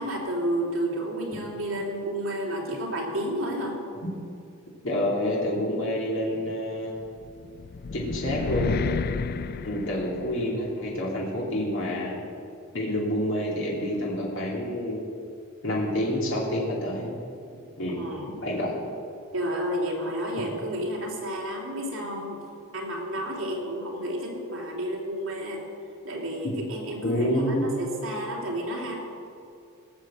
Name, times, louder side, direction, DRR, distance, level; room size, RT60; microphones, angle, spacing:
voice 1, 0.0-3.7 17.9-18.3 19.3-22.4 22.7-25.6 26.0-29.0, right 1 dB, 65° right, -3 dB, 3.2 m, -31 dB
voice 2, 4.8-6.9 7.9-8.8 9.6-12.1 12.7-15.0 15.6-17.1 17.8-18.0 18.4-18.7 27.0-27.7, equal, 60° left, -4 dB, 2.8 m, -28 dB
sound 1, 7.2-10.7, left 5 dB, 45° left, 0.4 m, -31 dB
18.0 x 6.6 x 7.7 m, 2.5 s
head